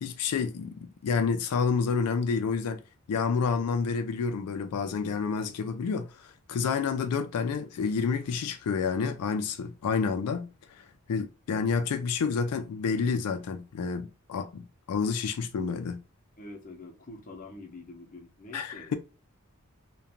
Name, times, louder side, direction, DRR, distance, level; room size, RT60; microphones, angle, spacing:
voice 1, 0.0-2.8 3.1-10.8 11.1-16.0 18.5-18.9, left 5 dB, 85° left, 0.4 m, -29 dB
voice 2, 16.4-19.0, left 2 dB, 35° left, 0.7 m, -45 dB
2.4 x 2.2 x 2.8 m
head